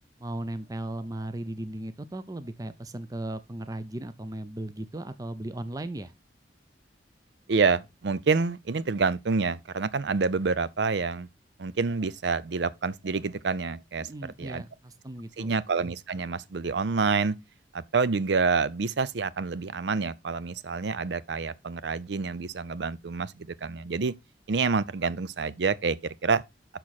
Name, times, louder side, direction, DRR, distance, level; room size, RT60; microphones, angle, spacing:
voice 1, 0.2-6.1 14.0-15.5, right 1 dB, 20° right, 0.5 m, -36 dB
voice 2, 7.5-11.3 11.6-14.1 14.4-14.6 15.4-17.4 17.7-24.1 24.5-26.4, right 4 dB, 70° right, 0.5 m, -27 dB
6.7 x 6.0 x 4.1 m
head